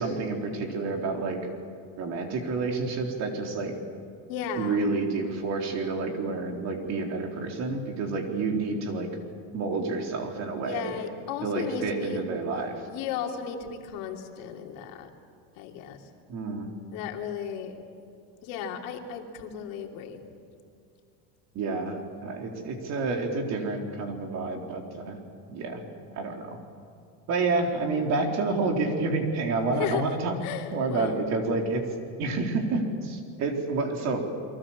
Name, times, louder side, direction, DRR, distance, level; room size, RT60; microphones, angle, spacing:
voice 1, 0.0-1.4 2.0-3.7 4.6-9.1 9.5-11.0 11.4-12.8 16.3-16.7 21.5-25.2 25.5-25.8 26.1-26.6 27.3-30.4 30.7-31.8 32.2-34.2, right 3 dB, 45° right, 3 dB, 4.0 m, -29 dB
voice 2, 4.3-4.9 10.6-12.2 12.9-15.1 15.6-16.0 16.9-17.8 18.4-20.2 29.8-30.0 30.4-31.2, left 8 dB, 60° left, 3 dB, 3.1 m, -35 dB
30.0 x 23.0 x 7.4 m, 2.4 s
cardioid pair, 155°, 38 cm